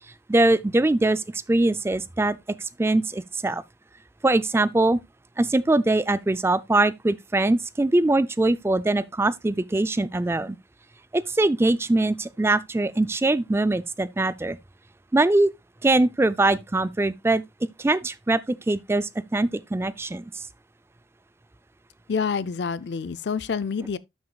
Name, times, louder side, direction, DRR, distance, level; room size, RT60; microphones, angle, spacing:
voice 1, 0.3-3.6 4.2-5.0 5.4-10.6 11.1-14.6 15.1-15.5 15.8-17.4 17.8-20.2, right 2 dB, 15° right, 0.3 m, -22 dB
voice 2, 22.1-24.0, left 5 dB, 70° left, 0.5 m, -27 dB
12.0 x 6.3 x 2.3 m
head